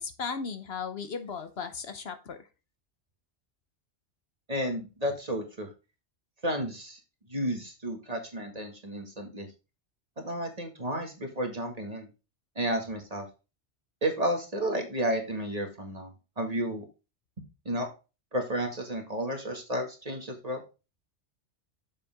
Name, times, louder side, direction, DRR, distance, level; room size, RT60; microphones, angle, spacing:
voice 1, 0.0-2.5, left 5 dB, 65° left, 9 dB, 1.2 m, -36 dB
voice 2, 4.5-5.7 6.4-7.0 7.3-9.5 10.2-12.1 12.6-13.3 14.0-16.8 17.7-17.9 18.3-20.6, right 1 dB, 35° right, 2 dB, 2.0 m, -32 dB
7.3 x 6.8 x 3.5 m, 0.30 s
omnidirectional pair, 1.1 m